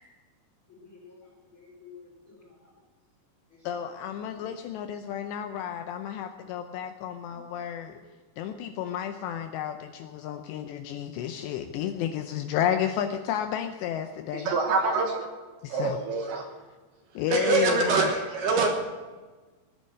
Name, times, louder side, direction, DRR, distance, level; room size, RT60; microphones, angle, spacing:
voice 1, 0.7-2.5 3.5-3.9 4.3-4.5 7.9-8.0, left 5 dB, 25° left, -3 dB, 4.4 m, -52 dB
voice 2, 3.6-8.0 8.4-14.5 15.6-16.0 17.2-18.1, left 10 dB, 80° left, 7 dB, 2.6 m, -32 dB
voice 3, 14.3-15.3 15.7-16.4 17.3-18.7, right 3 dB, 70° right, 3 dB, 2.7 m, -25 dB
17.5 x 10.0 x 6.4 m, 1.3 s
omnidirectional pair, 5.5 m